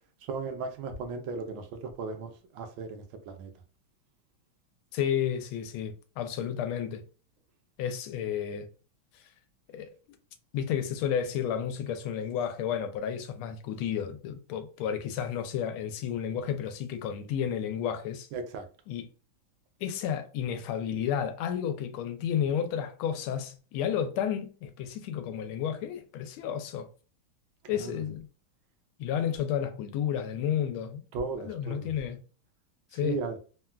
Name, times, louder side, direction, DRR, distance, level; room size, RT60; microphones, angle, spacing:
voice 1, 0.3-3.5 18.3-18.7 27.8-28.0 31.1-31.9 33.0-33.4, right 4 dB, 75° right, 1.3 m, -36 dB
voice 2, 4.9-7.0 7.8-8.7 9.7-9.9 10.5-18.3 18.9-19.1 19.8-26.9 27.7-28.3 29.0-31.0 31.4-32.2 32.9-33.2, left 9 dB, 85° left, 1.4 m, -31 dB
3.6 x 2.2 x 2.2 m
omnidirectional pair, 2.3 m